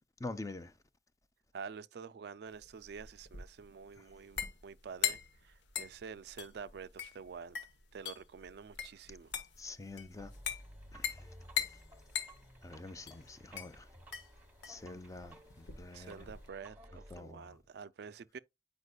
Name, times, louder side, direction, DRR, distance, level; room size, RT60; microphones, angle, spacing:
voice 1, 0.2-0.7 9.6-10.3 10.9-11.2 12.6-13.9 14.7-16.3 17.1-17.6, left 2 dB, 20° left, 0.5 m, -46 dB
voice 2, 1.5-7.6 7.9-9.3 15.9-18.4, right 6 dB, 60° right, 0.3 m, -48 dB
sound 1, 2.5-16.5, left 8 dB, 80° left, 1.0 m, -41 dB
sound 2, 10.2-17.2, equal, 10° right, 1.1 m, -56 dB
8.0 x 5.3 x 2.3 m
head